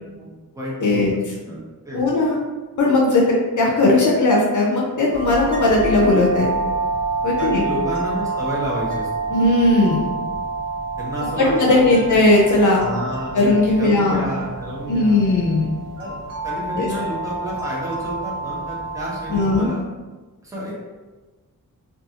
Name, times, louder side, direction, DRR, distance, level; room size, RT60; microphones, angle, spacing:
voice 1, 0.2-1.6 1.8-2.0 7.4-9.1 11.0-12.1 12.8-15.3 16.0-16.1 16.4-19.8 20.4-20.8, equal, 10° right, -6 dB, 0.7 m, -30 dB
voice 2, 0.8-1.1 1.9-2.4 2.8-3.2 3.6-6.5 7.2-7.6 9.3-10.0 11.4-12.8 13.3-14.3 14.9-15.7 16.8-16.9 19.3-19.7, left 2 dB, 60° left, -3 dB, 0.5 m, -17 dB
sound 1, 5.1-19.6, right 3 dB, 65° right, 0.9 m, -28 dB
2.6 x 2.4 x 2.7 m, 1.3 s
wide cardioid pair, 145°, 35 cm